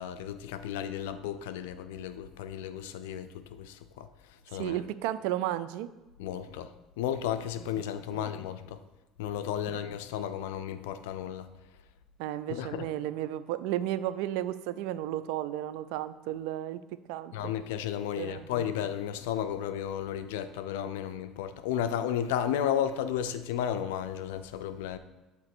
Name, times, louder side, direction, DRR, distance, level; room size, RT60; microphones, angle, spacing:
voice 1, 0.0-4.1 4.5-4.8 6.2-8.8 9.2-11.5 12.5-12.9 17.3-25.0, left 9 dB, 90° left, 0.4 m, -33 dB
voice 2, 4.6-5.9 8.1-8.3 9.7-9.8 12.2-16.8 17.1-17.5 18.2-18.5, right 13 dB, 80° right, 0.3 m, -33 dB
7.3 x 2.9 x 6.0 m
supercardioid pair, 95°, 0 cm